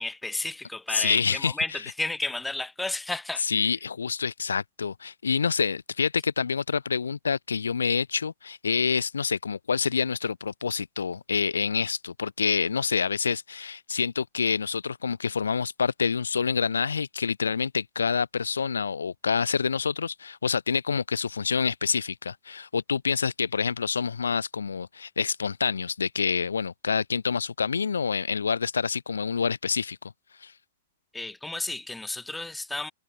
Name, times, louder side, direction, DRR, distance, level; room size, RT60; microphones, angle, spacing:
voice 1, 0.0-1.7 2.0-3.4 31.1-32.9, left 2 dB, 5° left, 1.4 m, -32 dB
voice 2, 0.9-1.8 3.4-30.0 30.4-30.5, left 5 dB, 80° left, 1.4 m, -27 dB
hypercardioid pair, 110°, 0 cm